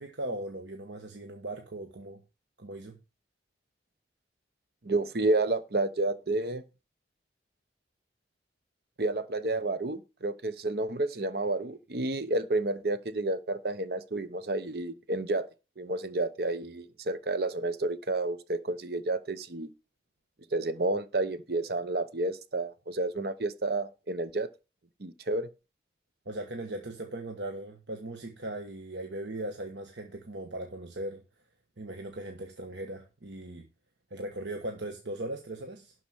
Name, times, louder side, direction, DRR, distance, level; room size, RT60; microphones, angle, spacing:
voice 1, 0.0-2.2 2.6-3.0 26.2-31.2 31.8-33.7 34.1-35.9, right 1 dB, 85° right, 1.3 m, -38 dB
voice 2, 4.8-6.6 9.0-15.5 15.8-19.7 20.5-24.5 25.0-25.5, right 2 dB, 60° right, 0.9 m, -30 dB
11.5 x 4.8 x 6.3 m
head